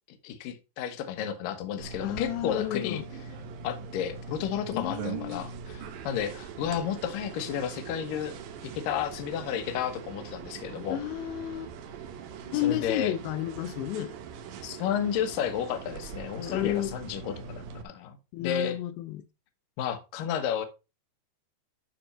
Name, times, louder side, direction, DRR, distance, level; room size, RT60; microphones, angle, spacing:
voice 1, 0.1-3.0 3.6-8.4 8.6-11.0 12.5-13.1 14.6-18.8 19.8-20.7, left 9 dB, 65° left, 2.4 m, -32 dB
sound 1, 1.8-17.8, right 6 dB, 70° right, 2.4 m, -42 dB
voice 2, 2.0-3.1 4.7-5.4 10.9-11.7 12.5-14.1 16.3-17.0 18.3-19.2, left 13 dB, 85° left, 2.9 m, -32 dB
12.0 x 4.4 x 4.2 m
omnidirectional pair, 5.0 m